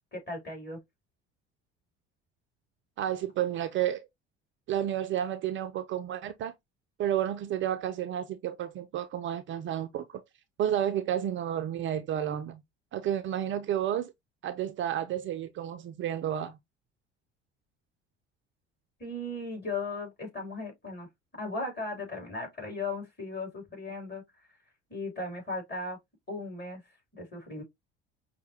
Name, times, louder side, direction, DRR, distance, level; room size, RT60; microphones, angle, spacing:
voice 1, 0.1-0.8 19.0-21.1 21.4-24.2 24.9-26.0 26.3-26.8 27.2-27.6, left 2 dB, 30° left, 3.1 m, -37 dB
voice 2, 3.0-4.1 4.7-6.5 7.0-10.0 10.6-12.6 12.9-14.1 14.4-16.6, right 10 dB, 35° right, 0.4 m, -31 dB
5.5 x 2.2 x 2.8 m
figure-of-eight pair, 60°, 35 cm